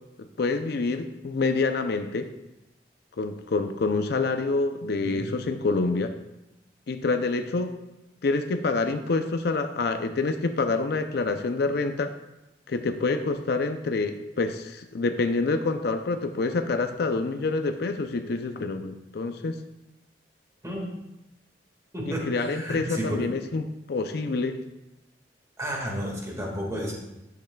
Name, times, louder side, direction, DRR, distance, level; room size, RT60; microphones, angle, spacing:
voice 1, 0.4-2.3 3.2-6.1 6.9-7.8 8.2-12.1 12.7-19.6 22.3-24.6, left 3 dB, 60° left, 7 dB, 0.5 m, -27 dB
voice 2, 21.9-23.3 25.6-26.9, equal, 15° right, -1 dB, 1.8 m, -32 dB
10.5 x 7.9 x 2.3 m, 0.94 s
head